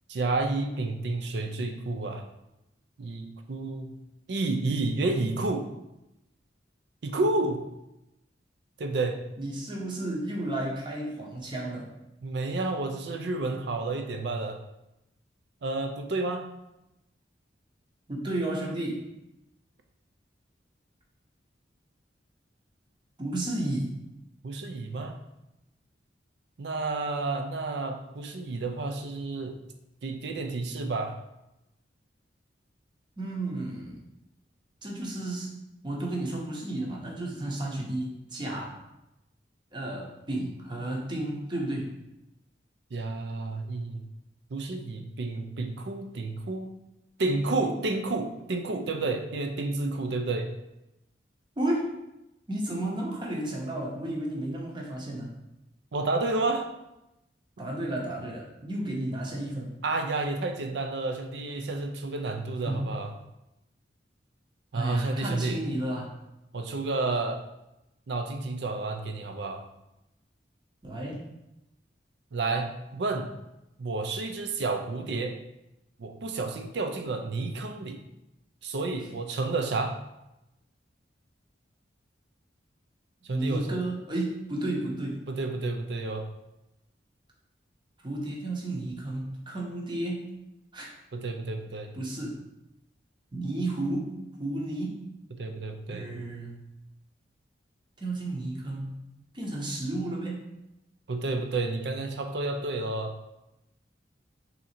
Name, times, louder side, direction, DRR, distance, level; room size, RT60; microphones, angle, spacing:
voice 1, 0.1-2.2 3.0-3.9 4.3-5.7 7.0-7.6 8.8-9.2 12.2-14.6 15.6-16.4 24.4-25.2 26.6-29.6 30.0-31.2 42.9-44.1 44.5-46.7 47.2-50.5 55.9-56.7 59.8-63.1 64.7-65.6 66.5-67.4 68.1-69.6 72.3-73.3 73.8-75.4 76.0-78.0 78.6-80.0 83.2-83.8 85.3-86.3 91.1-91.9 95.4-96.1 101.1-103.1, right 3 dB, 65° right, 5 dB, 0.5 m, -30 dB
voice 2, 9.4-11.9 18.1-19.0 23.2-23.9 33.2-34.0 34.8-35.5 35.8-38.7 39.7-41.9 51.6-52.0 52.5-55.3 57.6-59.8 62.6-62.9 64.7-66.2 70.8-71.2 83.3-85.2 88.0-90.3 90.7-90.9 91.9-92.4 93.3-95.1 95.9-96.6 98.0-99.0 99.3-100.4, right 1 dB, 25° right, -2 dB, 0.8 m, -32 dB
3.7 x 2.8 x 4.2 m, 0.91 s
head